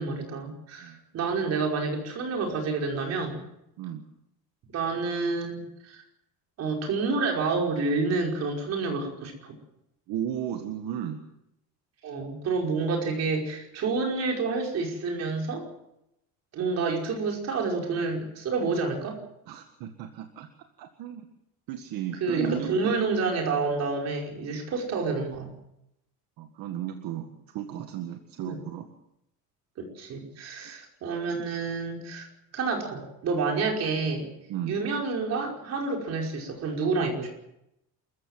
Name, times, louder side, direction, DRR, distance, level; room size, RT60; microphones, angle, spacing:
voice 1, 0.0-3.4 4.7-6.0 6.6-9.5 12.0-15.6 16.5-19.2 22.2-25.5 28.4-28.6 29.8-32.3 32.5-34.3 34.7-37.3, right 4 dB, 40° right, 1 dB, 5.3 m, -29 dB
voice 2, 10.1-11.2 19.5-20.5 20.8-21.3 21.7-22.9 26.4-28.9 30.3-30.8 31.3-31.4 34.5-34.8, right 10 dB, 65° right, 6 dB, 1.9 m, -35 dB
28.0 x 15.0 x 7.5 m, 0.83 s
cardioid pair, 175°, 38 cm